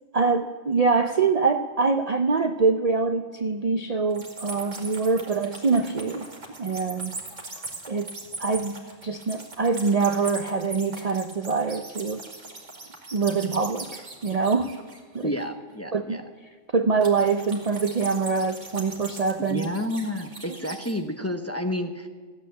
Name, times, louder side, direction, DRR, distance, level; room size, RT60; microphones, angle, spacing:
voice 1, 0.1-6.3 6.6-7.1 7.9-8.1 8.4-12.3 13.1-14.7 15.1-15.3 15.9-16.2 16.7-19.7, right 4 dB, 45° right, 8 dB, 0.5 m, -24 dB
sound 1, 4.1-15.4 17.0-21.0, right 3 dB, 65° right, 2.7 m, -40 dB
voice 2, 15.2-16.2 19.5-22.1, left 1 dB, 15° left, 5 dB, 0.7 m, -30 dB
14.5 x 8.2 x 9.4 m, 1.5 s
omnidirectional pair, 1.3 m